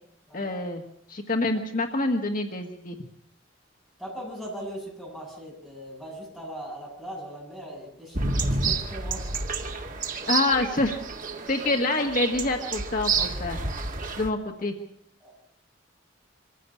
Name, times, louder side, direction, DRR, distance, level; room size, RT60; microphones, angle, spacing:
voice 1, 0.3-0.8 1.1-3.0 10.3-11.0 11.5-13.6 14.2-14.7, left 2 dB, 45° left, 4 dB, 1.6 m, -26 dB
voice 2, 4.0-9.3 15.2-15.3, equal, ahead, -3 dB, 7.6 m, -39 dB
sound 1, 8.1-14.3, right 4 dB, 40° right, 1.8 m, -29 dB
24.5 x 15.5 x 8.4 m, 0.71 s
head